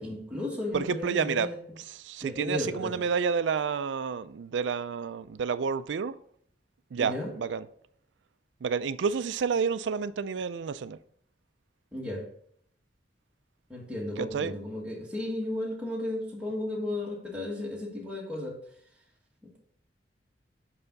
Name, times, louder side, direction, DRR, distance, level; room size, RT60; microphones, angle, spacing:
voice 1, 0.0-1.6 2.2-2.9 7.0-7.3 11.9-12.2 13.7-18.6, left 1 dB, 5° right, -3 dB, 1.8 m, -34 dB
voice 2, 0.7-1.5 1.9-6.1 6.9-7.6 8.6-11.0 14.2-14.5, right 6 dB, 85° right, 15 dB, 0.4 m, -30 dB
5.7 x 5.6 x 4.0 m, 0.64 s
head